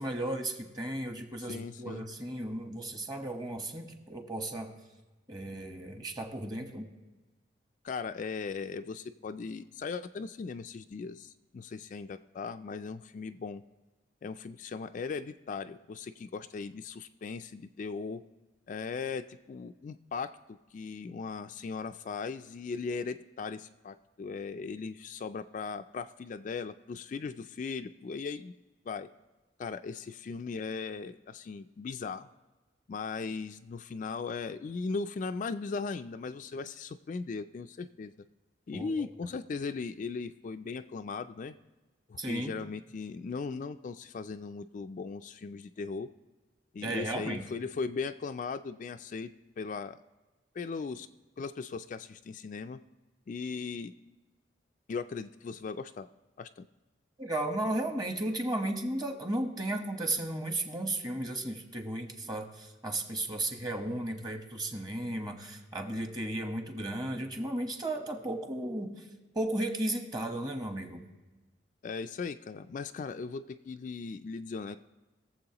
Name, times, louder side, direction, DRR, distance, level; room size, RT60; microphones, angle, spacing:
voice 1, 0.0-4.7 5.3-6.9 38.7-38.9 42.2-42.6 46.8-47.4 57.2-69.0 69.3-71.0, right 1 dB, 25° right, 4 dB, 1.2 m, -34 dB
voice 2, 1.4-2.1 7.8-13.6 14.2-18.2 18.7-28.5 28.9-29.1 29.6-32.3 32.9-38.1 38.7-41.6 42.1-46.1 46.7-50.0 50.5-51.1 51.4-52.8 53.3-53.9 54.9-56.1 56.4-56.7 71.8-74.8, left 4 dB, 45° left, 9 dB, 0.3 m, -38 dB
22.0 x 7.4 x 2.9 m, 1.2 s
head